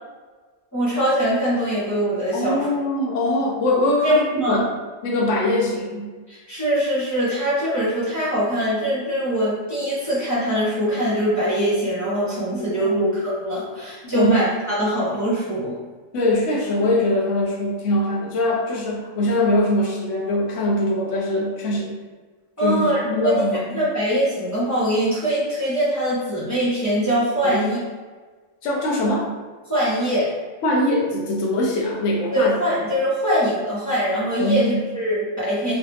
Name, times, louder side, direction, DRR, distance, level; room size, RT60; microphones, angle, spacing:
voice 1, 0.7-2.7 4.0-4.7 6.3-15.8 22.6-23.4 23.7-27.8 29.7-30.3 32.3-35.8, equal, 15° left, -10 dB, 1.3 m, -22 dB
voice 2, 2.3-4.7 5.0-6.1 12.5-13.1 14.0-14.4 16.1-21.9 22.6-23.8 27.4-27.7 28.6-29.3 30.6-32.8 34.4-34.8, left 1 dB, 80° left, -2 dB, 1.0 m, -22 dB
3.2 x 2.9 x 3.1 m, 1.4 s
omnidirectional pair, 1.2 m